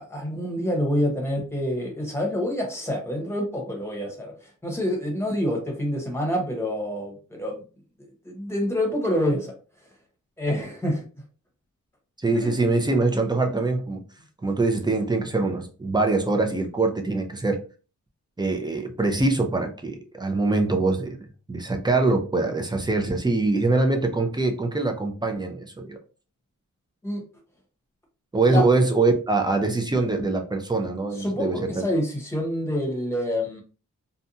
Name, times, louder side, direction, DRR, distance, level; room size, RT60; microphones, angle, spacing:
voice 1, 0.0-7.6 8.2-9.5 10.4-11.0 12.4-12.5 27.0-27.2 28.5-28.6 31.2-33.6, left 1 dB, 10° left, 0.9 m, -27 dB
voice 2, 12.2-14.0 14.4-17.6 18.4-26.0 28.3-31.7, right 3 dB, 15° right, 0.4 m, -23 dB
2.6 x 2.2 x 2.6 m
wide cardioid pair, 115°, 32 cm